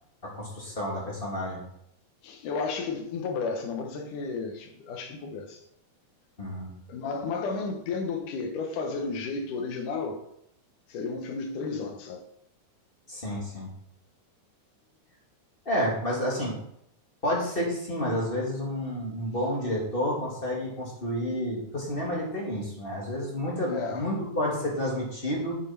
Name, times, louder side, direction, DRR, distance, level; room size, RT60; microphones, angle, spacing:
voice 1, 0.2-1.6 6.4-6.7 13.1-13.7 15.7-16.5 17.2-25.6, equal, 20° left, 2.5 m, -30 dB
voice 2, 2.2-5.6 6.9-10.2 10.9-12.2 23.7-24.1, left 4 dB, 85° left, 2.8 m, -33 dB
7.6 x 7.5 x 5.9 m
omnidirectional pair, 3.5 m